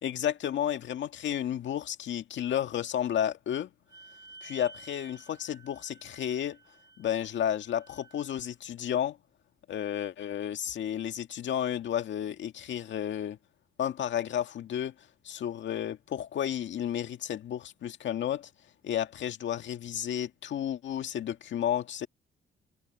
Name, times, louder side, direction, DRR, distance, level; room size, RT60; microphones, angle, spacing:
voice 1, 0.0-3.7 4.4-6.6 7.0-9.2 9.7-13.4 13.8-14.9 15.2-18.5 18.8-22.1, left 10 dB, 70° left, 2.0 m, -32 dB
Wind instrument woodwind instrument, 3.9-8.6, right 3 dB, 20° right, 8.0 m, -53 dB
cardioid pair, 90°, 20 cm